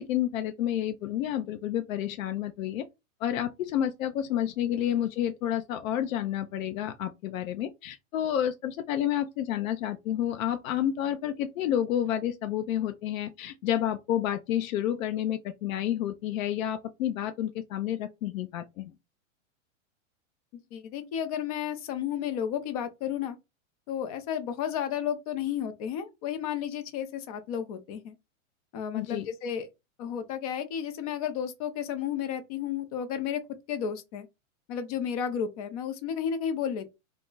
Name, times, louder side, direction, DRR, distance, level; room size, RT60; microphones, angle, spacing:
voice 1, 0.0-2.9 3.2-18.9 28.9-29.3, left 11 dB, 85° left, 0.5 m, -30 dB
voice 2, 20.5-23.4 23.9-28.2 28.7-29.7 30.0-33.4 33.7-34.3 34.7-36.9, left 8 dB, 30° left, 0.4 m, -32 dB
2.3 x 2.0 x 3.7 m
supercardioid pair, 145°, 39 cm